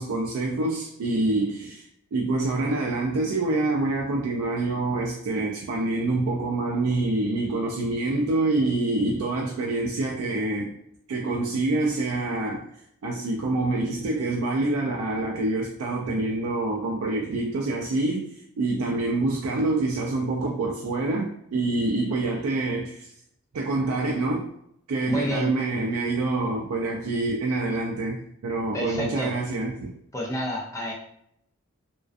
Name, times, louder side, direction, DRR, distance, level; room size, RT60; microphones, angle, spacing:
voice 1, 0.0-1.8 2.1-10.7 11.1-12.6 13.0-18.3 18.6-23.1 23.5-24.5 24.9-29.9, right 2 dB, 85° right, -1 dB, 0.4 m, -26 dB
voice 2, 25.1-25.5 28.7-29.4 30.1-30.9, equal, 15° left, -2 dB, 0.4 m, -29 dB
2.4 x 2.2 x 2.4 m, 0.73 s
head